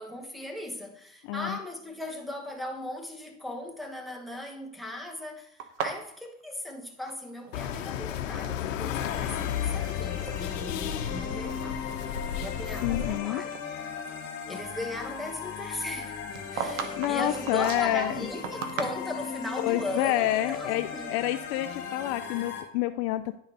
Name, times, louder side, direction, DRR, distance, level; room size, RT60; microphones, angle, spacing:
voice 1, 0.0-11.8 12.1-13.6 14.5-16.2 16.5-21.1, left 1 dB, ahead, 1.2 m, -38 dB
voice 2, 1.2-1.6 12.8-13.4 17.0-18.1 19.6-23.3, left 14 dB, 55° left, 0.5 m, -28 dB
sound 1, 5.6-7.6 7.8-8.6 9.3-9.8 10.1-10.4 11.0-11.1 11.7-13.2 13.5-13.7 15.9-19.4, right 7 dB, 85° right, 1.2 m, -38 dB
sound 2, 7.5-13.2, left 9 dB, 85° left, 0.8 m, -33 dB
sound 3, 8.9-22.6, left 6 dB, 40° left, 2.1 m, -38 dB
10.5 x 4.0 x 5.3 m
supercardioid pair, 115°, 37 cm